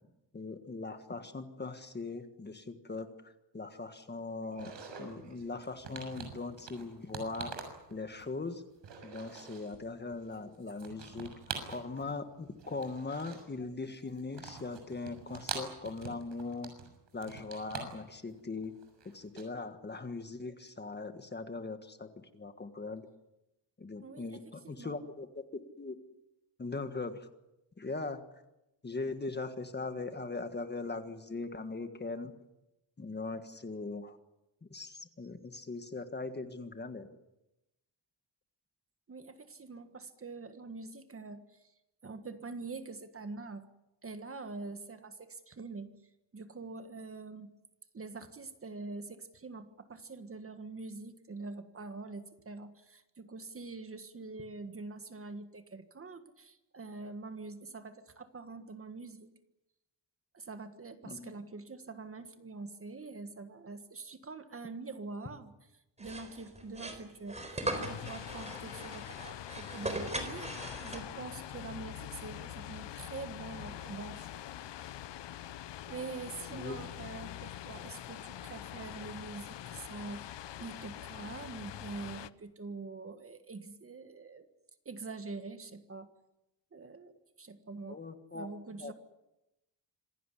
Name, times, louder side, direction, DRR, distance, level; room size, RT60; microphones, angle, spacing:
voice 1, 0.3-4.7 5.0-7.5 7.9-8.6 9.0-11.3 11.7-16.7 17.1-18.7 19.1-23.1 23.8-26.0 26.6-27.3 27.8-28.2 28.8-32.3 33.0-34.2 34.7-37.1 61.0-61.3 76.5-76.9 87.9-88.5 88.8-88.9, left 3 dB, 25° left, 8 dB, 1.6 m, -40 dB
sound 1, 4.5-8.5 8.8-9.9 10.1-12.2 12.5-13.7 14.0-19.4, right 5 dB, 80° right, 6.6 m, -45 dB
voice 2, 24.0-24.9 39.1-41.4 42.0-43.7 44.0-45.9 46.3-47.5 47.9-59.3 60.3-65.5 66.0-74.3 75.8-80.3 80.6-84.5 84.9-86.1 86.7-88.0 88.3-88.9, right 3 dB, 30° right, 9 dB, 1.6 m, -45 dB
sound 2, 66.0-71.4, right 2 dB, 15° right, 4.1 m, -39 dB
sound 3, 67.7-82.3, left 12 dB, 80° left, 0.9 m, -44 dB
26.5 x 17.0 x 10.0 m, 0.94 s
wide cardioid pair, 170°, 43 cm